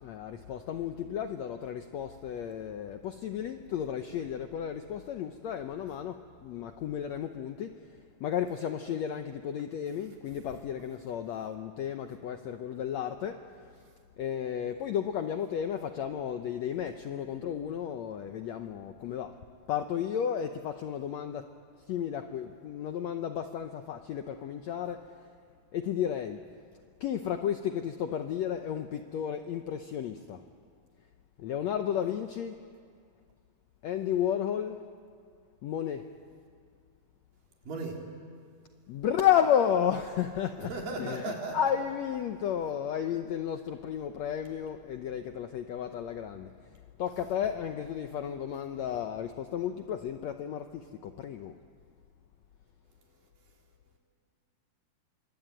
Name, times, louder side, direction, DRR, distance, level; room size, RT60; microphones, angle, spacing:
voice 1, 0.0-7.8 8.2-13.4 14.2-19.3 19.7-21.5 21.9-25.1 25.7-26.4 27.0-30.4 31.4-32.5 33.8-34.8 35.6-36.1 38.9-46.5 47.0-51.5, left 9 dB, 80° left, 7 dB, 1.6 m, -32 dB
voice 2, 37.6-38.0 40.6-41.7, right 3 dB, 65° right, 0 dB, 5.1 m, -36 dB
26.0 x 23.5 x 9.3 m, 2.1 s
omnidirectional pair, 4.2 m